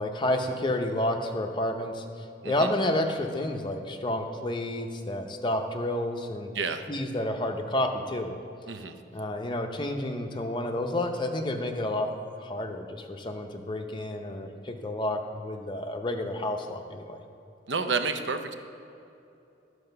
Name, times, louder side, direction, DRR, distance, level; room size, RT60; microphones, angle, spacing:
voice 1, 0.0-6.5 6.9-8.3 9.1-12.1 12.4-17.2, left 1 dB, 25° left, 4 dB, 0.6 m, -30 dB
voice 2, 17.7-18.5, right 4 dB, 80° right, 8 dB, 0.7 m, -30 dB
11.5 x 4.8 x 6.7 m, 2.7 s
head